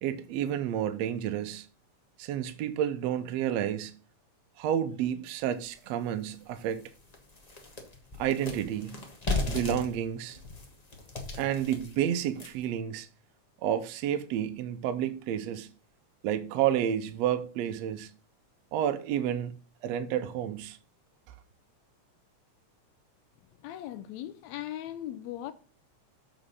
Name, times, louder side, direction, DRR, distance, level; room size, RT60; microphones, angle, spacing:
voice 1, 0.0-1.7 2.2-3.9 4.6-6.9 8.2-9.1 9.5-10.4 11.4-13.1 13.6-15.7 16.2-18.1 18.7-19.6 19.8-20.8, right 10 dB, 75° right, 1.7 m, -30 dB
sound 1, 5.6-5.7 6.2-6.3 6.7-12.7, left 3 dB, 35° left, 0.6 m, -36 dB
voice 2, 23.6-25.5, left 12 dB, 80° left, 1.8 m, -38 dB
7.3 x 5.1 x 5.4 m
omnidirectional pair, 3.4 m